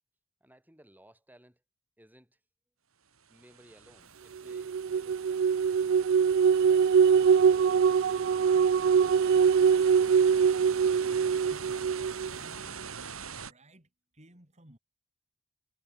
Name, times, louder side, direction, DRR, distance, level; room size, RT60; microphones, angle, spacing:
voice 1, 0.4-1.6 2.0-2.4 3.3-5.5 5.8-6.2 6.6-9.0, right 1 dB, 10° right, 6.6 m, -59 dB
sound 1, 3.2-13.5, right 6 dB, 85° right, 4.3 m, -44 dB
sound 2, 4.5-12.3, right 6 dB, 55° right, 0.3 m, -23 dB
voice 2, 11.4-11.9 12.3-13.0 13.5-14.8, right 1 dB, 35° right, 4.8 m, -56 dB
head